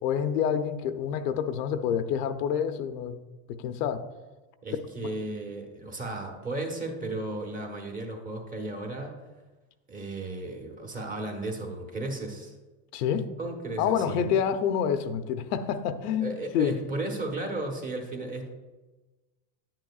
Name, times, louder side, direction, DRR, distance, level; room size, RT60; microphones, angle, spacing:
voice 1, 0.0-3.2 3.5-4.0 5.0-5.1 12.9-13.3 13.8-16.7, left 8 dB, 80° left, 9 dB, 0.8 m, -28 dB
voice 2, 4.6-9.1 9.9-12.5 13.4-14.4 16.2-18.5, right 2 dB, 20° right, 2 dB, 1.1 m, -34 dB
10.0 x 9.0 x 2.4 m, 1.2 s
supercardioid pair, 150°, 47 cm